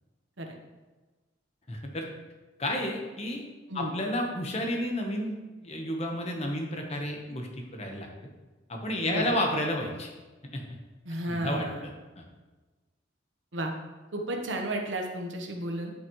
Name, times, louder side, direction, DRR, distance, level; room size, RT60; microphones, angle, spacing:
voice 1, 1.7-2.0 2.6-3.4 3.7-5.3 5.6-8.1 8.7-10.1 10.5-10.6 11.3-11.7 12.2-12.3, left 1 dB, 35° left, 2 dB, 1.1 m, -31 dB
voice 2, 9.0-9.4 11.0-11.8 13.5-13.7 14.1-15.9, right 1 dB, 75° right, 2 dB, 1.1 m, -33 dB
11.0 x 5.6 x 3.1 m, 1.2 s
head